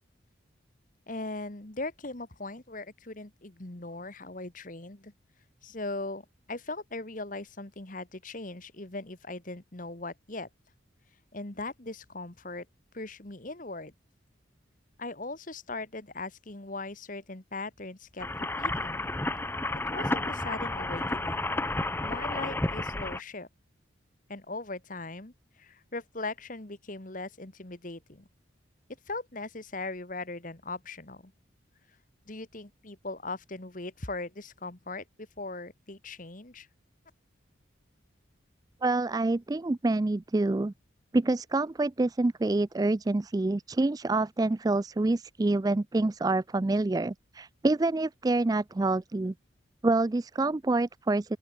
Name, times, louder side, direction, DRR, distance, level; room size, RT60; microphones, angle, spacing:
voice 1, 1.1-5.1 5.6-10.5 11.3-12.7 12.9-13.9 15.0-19.1 19.9-21.8 22.0-23.5 24.3-28.3 29.1-31.3 32.3-35.0 35.4-36.7, left 2 dB, 40° left, 1.7 m, -39 dB
sound 1, 18.2-23.2, left 2 dB, 10° left, 0.9 m, -31 dB
voice 2, 38.8-40.7 41.1-49.3 49.8-51.4, right 2 dB, 20° right, 0.3 m, -27 dB
open air
head